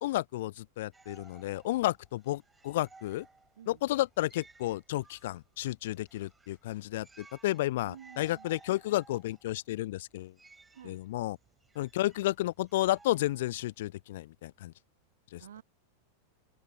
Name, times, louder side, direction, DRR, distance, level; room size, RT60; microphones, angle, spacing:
voice 1, 0.0-3.3 3.7-10.3 10.8-11.4 11.8-14.7 15.3-15.4, left 16 dB, 55° left, 0.3 m, -32 dB
sound 1, 0.9-13.9, right 3 dB, 10° right, 6.6 m, -59 dB
voice 2, 7.8-8.6 10.7-11.0 15.4-15.6, right 10 dB, 65° right, 0.9 m, -51 dB
open air
figure-of-eight pair, 90°, 0 cm